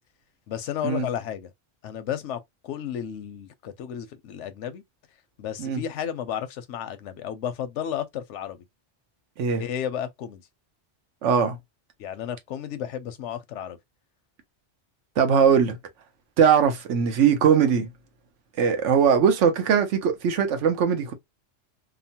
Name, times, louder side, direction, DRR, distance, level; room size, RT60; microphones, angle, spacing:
voice 1, 0.5-1.5 1.8-4.8 5.4-8.6 9.6-10.4 12.0-13.8, left 9 dB, 85° left, 0.9 m, -33 dB
voice 2, 11.2-11.6 15.2-15.8 16.4-17.9 18.6-21.1, right 7 dB, 85° right, 1.0 m, -20 dB
2.9 x 2.1 x 2.7 m
omnidirectional pair, 1.2 m